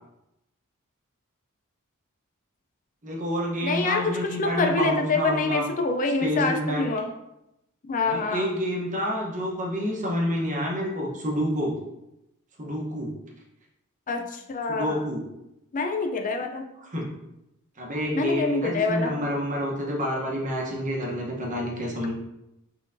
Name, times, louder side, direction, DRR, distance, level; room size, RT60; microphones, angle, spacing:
voice 1, 3.0-5.7 6.1-6.8 8.0-11.7 12.6-13.1 14.7-15.2 16.8-17.1 17.8-22.1, equal, 35° right, -2 dB, 1.0 m, -28 dB
voice 2, 3.6-7.1 7.8-8.5 14.1-15.0 15.7-16.6 18.1-19.1, left 3 dB, 35° left, 5 dB, 0.5 m, -26 dB
4.2 x 3.8 x 2.6 m, 0.88 s
head